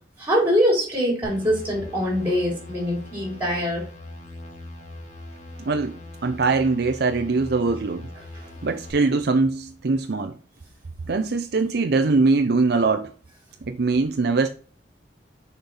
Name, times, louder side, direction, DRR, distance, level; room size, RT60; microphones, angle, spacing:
voice 1, 0.2-3.8 8.4-8.5, equal, 10° right, 3.5 m, -23 dB
sound 1, 1.2-8.9, left 1 dB, 45° left, 1.6 m, -41 dB
voice 2, 5.6-6.0 6.2-8.1 8.6-10.3 11.1-13.1 13.7-14.5, right 3 dB, 60° right, 0.6 m, -22 dB
6.6 x 4.4 x 4.0 m
head